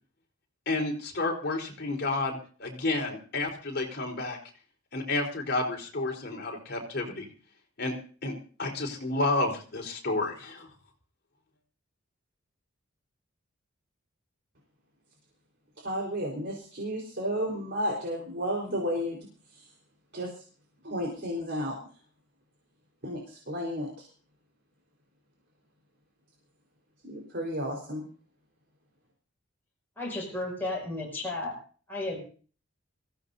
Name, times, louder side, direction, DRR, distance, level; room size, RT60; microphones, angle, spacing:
voice 1, 0.7-4.4 4.9-7.3 7.8-7.9 8.2-10.7, left 2 dB, 50° left, 1 dB, 4.1 m, -31 dB
voice 2, 15.8-19.2 19.5-19.7 20.1-20.4 20.8-22.0 23.0-24.1 27.0-28.1, equal, 55° right, -1 dB, 4.3 m, -33 dB
voice 3, 30.0-31.5 31.9-32.2, left 2 dB, 10° left, -4 dB, 6.0 m, -33 dB
25.0 x 16.0 x 2.7 m, 0.41 s
head